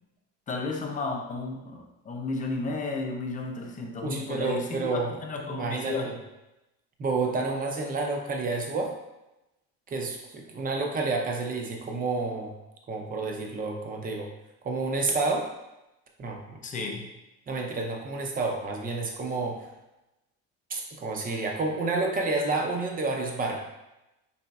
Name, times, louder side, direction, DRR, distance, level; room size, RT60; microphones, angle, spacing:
voice 1, 0.5-6.2 16.6-17.1, left 3 dB, 25° left, 1 dB, 0.5 m, -33 dB
voice 2, 4.0-5.1 5.5-6.1 7.0-8.9 9.9-12.5 12.9-14.3 14.6-15.5 16.2-16.6 17.5-19.7 20.7-23.6, right 3 dB, 25° right, 1 dB, 0.6 m, -29 dB
4.1 x 3.7 x 2.3 m, 0.95 s
cardioid pair, 135°, 33 cm